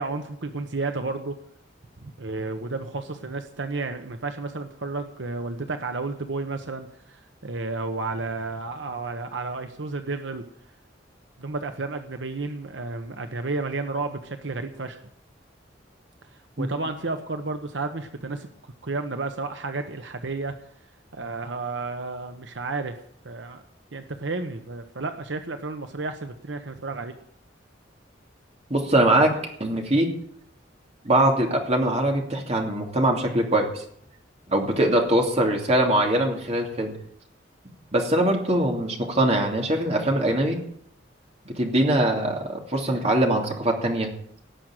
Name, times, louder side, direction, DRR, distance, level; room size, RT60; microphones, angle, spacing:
voice 1, 0.0-1.4 2.0-10.4 11.4-15.0 16.6-18.5 18.8-20.6 21.1-23.6 23.9-27.2, right 3 dB, 80° right, 7 dB, 1.0 m, -32 dB
voice 2, 28.7-30.1 31.0-33.8 34.5-36.9 37.9-40.6 41.4-44.1, right 1 dB, 35° right, 1 dB, 2.9 m, -22 dB
18.0 x 6.4 x 9.1 m, 0.67 s
head